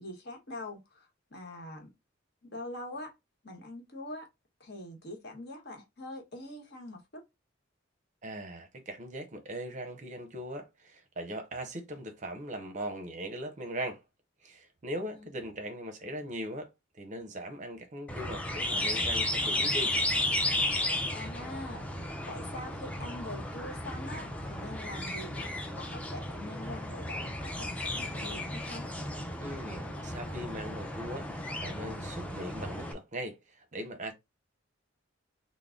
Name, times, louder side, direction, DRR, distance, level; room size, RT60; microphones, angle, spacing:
voice 1, 0.0-1.9 2.4-3.1 3.4-4.3 4.6-7.2 15.1-15.5 21.1-21.8 22.2-28.9, left 1 dB, 55° left, 1.0 m, -44 dB
voice 2, 8.2-14.0 14.4-19.9 29.4-34.1, right 1 dB, 40° right, 0.6 m, -40 dB
sound 1, 18.1-32.9, left 1 dB, 5° left, 0.4 m, -34 dB
3.7 x 2.0 x 3.6 m
head